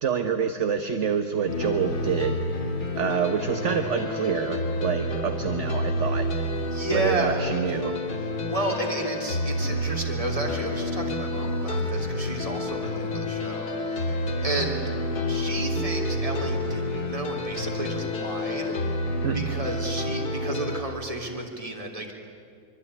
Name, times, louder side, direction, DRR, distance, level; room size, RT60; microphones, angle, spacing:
voice 1, 0.0-2.4 3.0-6.3 6.9-8.0 19.2-19.4, right 7 dB, 45° right, 7 dB, 1.2 m, -27 dB
sound 1, 1.5-20.8, left 1 dB, 60° left, 2.5 m, -29 dB
voice 2, 6.7-7.6 8.2-14.9 15.3-18.7 19.3-22.1, right 2 dB, 15° right, 1 dB, 3.3 m, -32 dB
25.0 x 24.0 x 9.9 m, 2.3 s
omnidirectional pair, 2.0 m